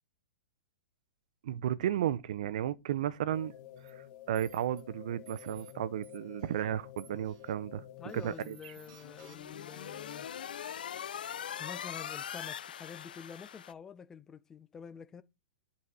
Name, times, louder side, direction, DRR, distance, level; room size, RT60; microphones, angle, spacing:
voice 1, 1.4-3.5 4.3-7.8 8.1-8.6, right 11 dB, 55° right, 0.6 m, -33 dB
sound 1, 3.3-8.7, left 12 dB, 30° left, 1.2 m, -51 dB
sound 2, 3.8-3.9 4.3-4.8 5.2-5.7 6.0-6.6 7.0-7.5 8.1-9.7, right 8 dB, 40° right, 1.6 m, -58 dB
voice 2, 8.0-10.3 11.6-15.2, left 7 dB, 10° left, 0.4 m, -48 dB
sound 3, 8.7-13.7, left 9 dB, 85° left, 0.4 m, -42 dB
10.0 x 4.1 x 4.7 m
hypercardioid pair, 165°, 5 cm